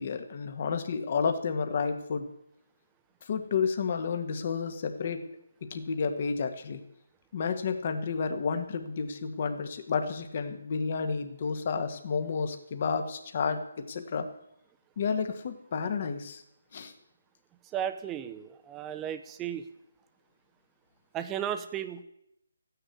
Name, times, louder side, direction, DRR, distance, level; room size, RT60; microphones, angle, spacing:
voice 1, 0.0-2.3 3.2-5.2 5.6-6.8 7.3-14.3 15.0-16.4 16.7-16.9, left 5 dB, 40° left, 8 dB, 1.7 m, -31 dB
voice 2, 17.7-19.6 21.1-22.0, right 10 dB, 15° right, 9 dB, 0.9 m, -34 dB
14.5 x 10.0 x 8.3 m, 0.80 s
hypercardioid pair, 160°, 0 cm